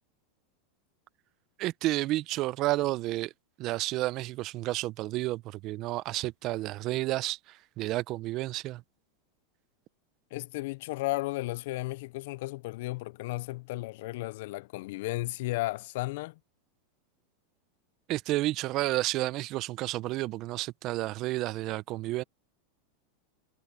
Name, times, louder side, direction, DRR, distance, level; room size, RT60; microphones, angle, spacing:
voice 1, 1.6-3.3 3.6-7.4 7.8-8.8 18.1-22.2, right 17 dB, 45° right, 0.7 m, -31 dB
voice 2, 10.3-16.4, left 20 dB, 65° left, 0.5 m, -34 dB
hypercardioid pair, 115°, 0 cm